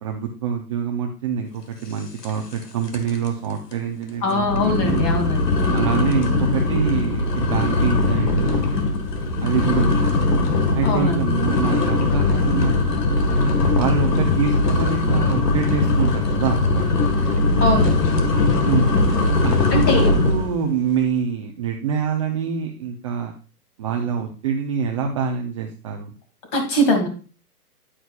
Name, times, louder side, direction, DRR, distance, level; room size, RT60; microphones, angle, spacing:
voice 1, 0.0-5.1 5.7-8.6 9.4-10.2 10.7-13.2 13.7-17.1 18.6-18.9 19.4-23.3 23.8-26.1, right 6 dB, 20° right, 1 dB, 0.6 m, -25 dB
sound 1, 2.2-2.6 2.9-3.3 3.7-3.8 4.4-20.5, left 2 dB, 85° left, 1.9 m, -20 dB
voice 2, 4.2-5.4 10.8-11.3 17.6-18.2 19.7-20.1 26.5-27.1, left 1 dB, 25° left, 3 dB, 2.5 m, -21 dB
10.0 x 9.1 x 2.4 m, 0.35 s
hypercardioid pair, 145°, 47 cm